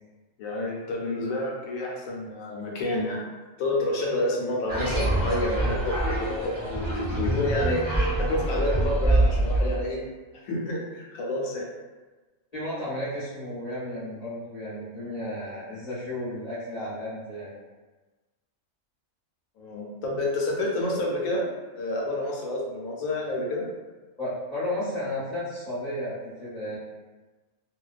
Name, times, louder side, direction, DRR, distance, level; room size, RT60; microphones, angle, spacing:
voice 1, 0.4-3.2 3.6-7.8 8.2-10.0 10.4-11.6 19.6-21.5 21.7-23.6, left 1 dB, 90° left, -2 dB, 1.0 m, -29 dB
sound 1, 4.7-9.8, right 1 dB, 10° right, 0.7 m, -25 dB
voice 2, 12.5-17.5 24.2-26.8, left 1 dB, 35° left, -15 dB, 0.9 m, -33 dB
2.4 x 2.2 x 2.3 m, 1.2 s
omnidirectional pair, 1.4 m